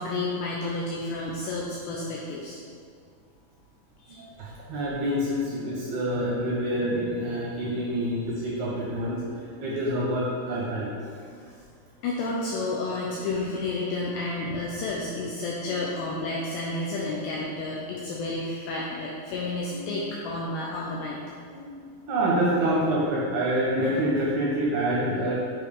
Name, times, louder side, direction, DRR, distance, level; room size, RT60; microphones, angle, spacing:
voice 1, 0.0-2.6 4.0-4.2 7.3-7.4 12.0-21.2, left 2 dB, 90° left, -4 dB, 2.4 m, -31 dB
voice 2, 4.2-10.9 11.2-11.3 15.6-15.8 19.7-19.9 21.1-21.2 21.5-25.3, right 1 dB, 75° right, -5 dB, 2.4 m, -27 dB
9.6 x 3.8 x 3.6 m, 2.1 s
omnidirectional pair, 5.6 m